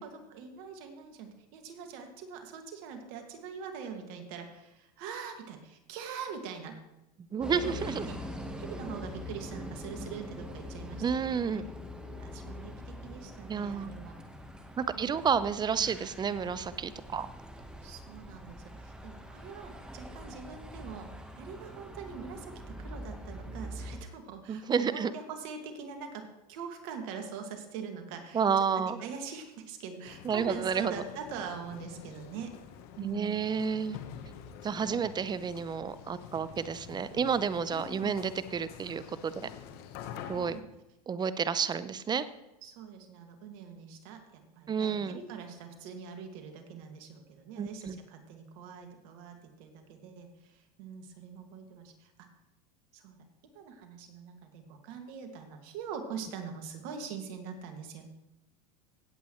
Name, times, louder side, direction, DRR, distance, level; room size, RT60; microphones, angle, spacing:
voice 1, 0.0-6.8 7.5-7.7 8.0-8.2 8.6-11.6 12.1-14.1 14.9-15.2 17.8-32.5 33.0-33.4 38.0-38.3 40.3-40.6 42.6-52.3 52.9-53.2 53.5-58.1, right 6 dB, 60° right, 5 dB, 2.0 m, -43 dB
voice 2, 7.3-8.1 11.0-11.6 13.5-13.9 14.8-17.3 24.5-25.1 28.3-29.0 30.2-30.9 33.0-34.0 34.6-39.3 40.3-40.6 41.1-42.3 44.7-45.2 47.6-48.0, right 6 dB, 20° right, 15 dB, 0.6 m, -30 dB
sound 1, 7.4-24.0, equal, 5° right, 1.2 m, -43 dB
sound 2, 30.0-40.6, left 8 dB, 55° left, 1.2 m, -47 dB
17.0 x 8.2 x 3.1 m, 0.93 s
hypercardioid pair, 105°, 20 cm